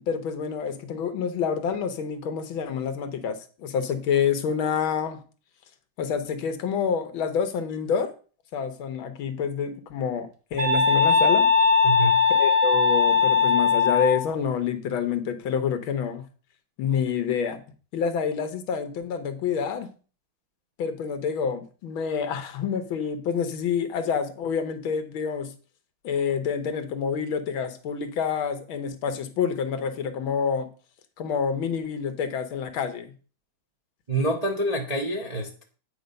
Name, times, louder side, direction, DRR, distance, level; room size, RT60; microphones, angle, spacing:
voice 1, 0.0-5.2 6.0-8.1 8.5-11.5 12.3-16.2 16.8-17.6 17.9-19.9 20.8-25.5 26.0-30.7 31.2-33.1, left 7 dB, 75° left, 9 dB, 1.8 m, -27 dB
sound 1, 10.6-14.2, left 5 dB, 80° right, 2.0 m, -19 dB
voice 2, 11.8-12.2 34.1-35.6, right 1 dB, 35° right, 0 dB, 0.6 m, -27 dB
9.1 x 4.5 x 5.3 m, 0.38 s
omnidirectional pair, 2.3 m